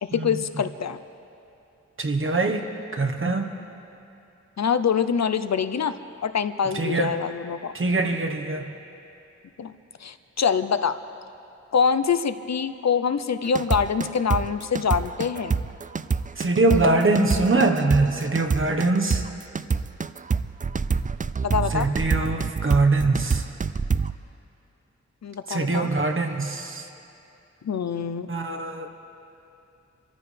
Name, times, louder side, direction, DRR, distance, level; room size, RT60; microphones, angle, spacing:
voice 1, 0.0-1.0 4.6-7.7 9.6-9.7 10.0-11.0 11.7-15.6 21.4-21.9 25.2-25.9 27.6-28.3, left 6 dB, 65° left, 12 dB, 0.6 m, -25 dB
voice 2, 2.0-2.6 2.9-3.5 6.7-7.1 7.7-8.7 16.4-19.2 21.7-23.4 25.5-26.9 28.3-28.9, right 2 dB, 45° right, 4 dB, 1.3 m, -23 dB
sound 1, 13.5-24.1, right 5 dB, 30° right, 0.4 m, -26 dB
26.5 x 14.0 x 3.4 m, 2.8 s
wide cardioid pair, 90°, 29 cm